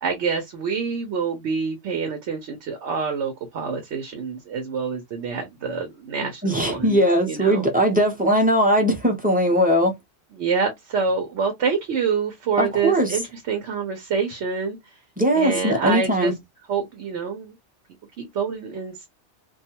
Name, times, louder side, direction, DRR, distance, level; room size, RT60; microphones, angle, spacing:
voice 1, 0.0-7.0 7.3-7.7 10.4-14.8 15.3-16.3 16.7-17.6 18.2-18.9, right 5 dB, 80° right, 1.0 m, -26 dB
voice 2, 6.4-9.9 12.6-13.2 15.2-16.3, equal, 10° right, 0.6 m, -20 dB
2.3 x 2.2 x 2.7 m
omnidirectional pair, 1.2 m